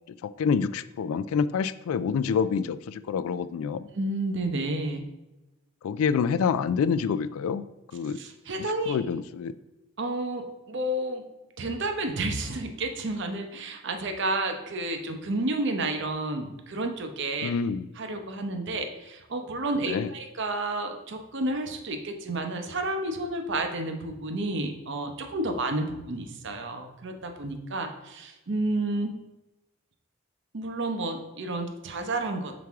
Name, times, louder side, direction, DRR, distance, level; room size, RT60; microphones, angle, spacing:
voice 1, 0.1-3.9 5.8-7.6 7.9-8.2 8.9-9.5 17.4-17.9 19.9-20.1, left 6 dB, 80° left, 15 dB, 0.3 m, -27 dB
voice 2, 3.9-5.0 8.2-9.0 10.0-11.3 11.6-17.5 18.0-29.1 30.5-32.6, right 2 dB, 55° right, 5 dB, 0.7 m, -31 dB
6.0 x 4.7 x 3.5 m, 1.0 s
head